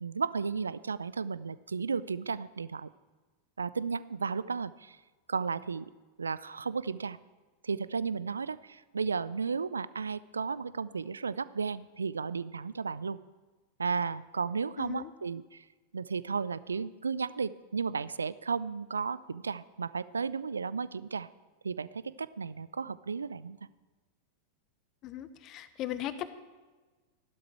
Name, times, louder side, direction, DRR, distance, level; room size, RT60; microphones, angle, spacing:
voice 1, 0.0-2.9 3.6-5.0 5.3-5.9 6.2-7.2 7.6-13.2 13.8-15.6 15.9-21.3 21.6-23.6, right 5 dB, 75° right, 18 dB, 0.4 m, -34 dB
voice 2, 14.8-15.1 25.0-26.3, left 12 dB, 35° left, 13 dB, 0.9 m, -37 dB
14.0 x 12.0 x 4.6 m, 1.3 s
figure-of-eight pair, 90°, 0 cm